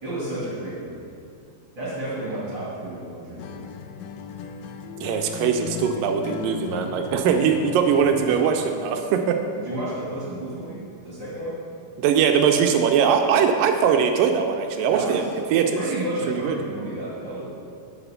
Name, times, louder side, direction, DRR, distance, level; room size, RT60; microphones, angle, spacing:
voice 1, 0.0-1.1 1.8-3.6 9.6-11.5 14.9-15.3 15.7-17.5, right 1 dB, 35° right, -7 dB, 2.3 m, -31 dB
Acoustic guitar, 3.4-8.8, left 7 dB, 85° left, 1.9 m, -36 dB
voice 2, 5.0-9.4 12.0-15.8 16.3-16.6, right 7 dB, 80° right, 5 dB, 2.1 m, -21 dB
8.9 x 8.4 x 5.6 m, 2.5 s
omnidirectional pair, 4.3 m